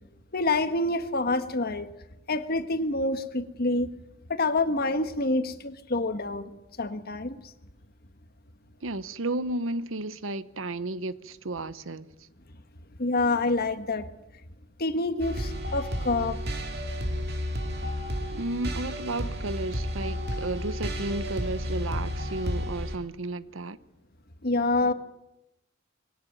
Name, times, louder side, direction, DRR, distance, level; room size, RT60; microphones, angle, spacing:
voice 1, 0.3-1.9 2.3-3.9 4.3-6.5 6.8-7.4 13.0-14.1 14.8-16.4 24.4-24.9, left 2 dB, 50° left, 1.6 m, -27 dB
voice 2, 8.8-12.1 18.3-23.8, right 2 dB, 75° right, 1.0 m, -33 dB
sound 1, 15.2-23.0, equal, 55° right, 3.2 m, -32 dB
22.0 x 17.5 x 9.3 m
head